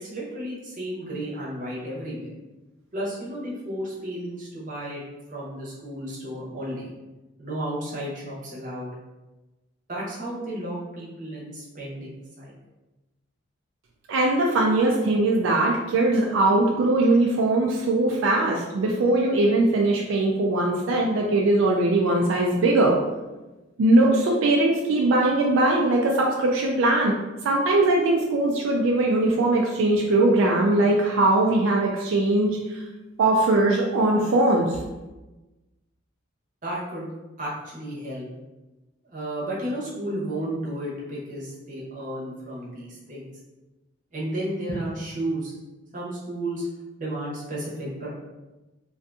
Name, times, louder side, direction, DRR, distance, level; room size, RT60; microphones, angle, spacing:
voice 1, 0.0-2.3 2.9-5.0 5.3-6.9 7.4-8.9 9.9-12.5 36.6-37.1 37.4-38.2 39.0-43.3 44.1-45.5 45.9-46.7 47.0-48.1, right 1 dB, 40° right, -6 dB, 0.8 m, -33 dB
voice 2, 14.1-23.0 23.8-27.1 27.4-32.8 33.2-34.8, right 2 dB, 75° right, -1 dB, 0.3 m, -21 dB
2.5 x 2.3 x 2.5 m, 1.1 s
head